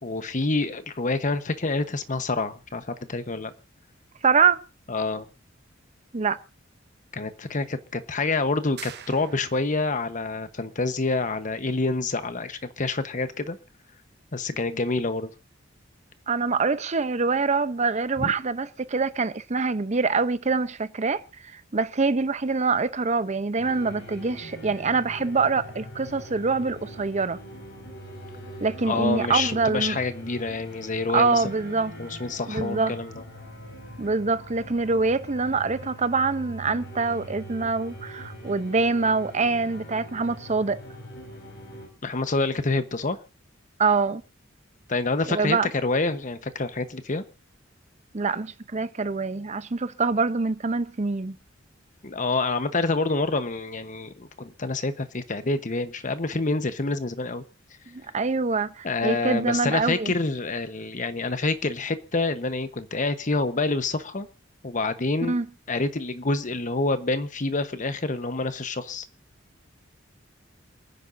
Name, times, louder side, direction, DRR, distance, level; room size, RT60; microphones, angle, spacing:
voice 1, 0.0-3.5 4.9-5.3 7.1-13.6 14.3-15.3 18.2-18.3 28.8-31.5 32.0-33.1 42.0-43.2 44.9-47.2 52.0-57.4 58.8-64.3 64.6-65.3 65.7-69.1, left 3 dB, 40° left, 1.1 m, -27 dB
voice 2, 4.2-4.6 6.1-6.4 16.3-21.2 21.5-27.4 28.6-30.0 31.1-31.9 32.5-32.9 34.0-40.8 43.8-44.2 45.3-45.7 48.1-51.4 57.9-60.1 65.3-65.5, right 4 dB, 35° right, 0.7 m, -25 dB
sound 1, 8.8-9.9, right 10 dB, 55° right, 0.9 m, -43 dB
sound 2, 23.6-41.9, equal, 65° left, 5.7 m, -42 dB
28.5 x 9.8 x 2.7 m
head